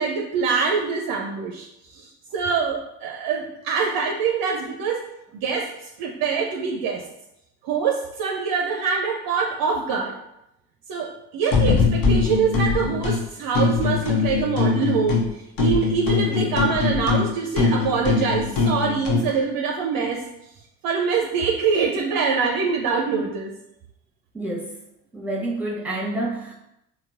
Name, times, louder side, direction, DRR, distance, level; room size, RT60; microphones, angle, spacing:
voice 1, 0.0-1.7 1.9-5.0 5.4-5.7 6.0-7.0 7.6-10.1 10.9-15.2 15.6-20.2 20.8-23.5, right 5 dB, 50° right, 1 dB, 0.5 m, -24 dB
sound 1, 11.5-13.2 13.5-15.3 15.6-19.3, left 4 dB, 45° left, 0.7 m, -22 dB
voice 2, 24.3-24.8 25.1-26.5, right 2 dB, 5° right, -3 dB, 0.9 m, -28 dB
3.8 x 2.0 x 2.4 m, 0.84 s
figure-of-eight pair, 45°, 46 cm